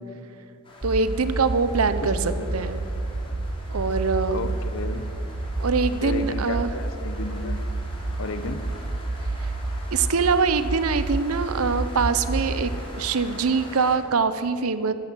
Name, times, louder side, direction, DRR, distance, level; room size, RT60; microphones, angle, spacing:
sound 1, 0.6-14.0, left 1 dB, 25° left, 3.0 m, -44 dB
sound 2, 0.8-12.8, right 2 dB, 30° right, 0.5 m, -30 dB
voice 1, 0.8-2.8 3.7-4.4 5.6-6.7 9.4-9.5 9.9-12.7 13.0-14.9, right 4 dB, 70° right, 12 dB, 0.7 m, -23 dB
voice 2, 2.0-2.5 4.3-5.0 6.0-7.6 8.2-8.6, left 2 dB, 65° left, 10 dB, 1.0 m, -33 dB
15.0 x 13.0 x 6.2 m, 2.6 s
head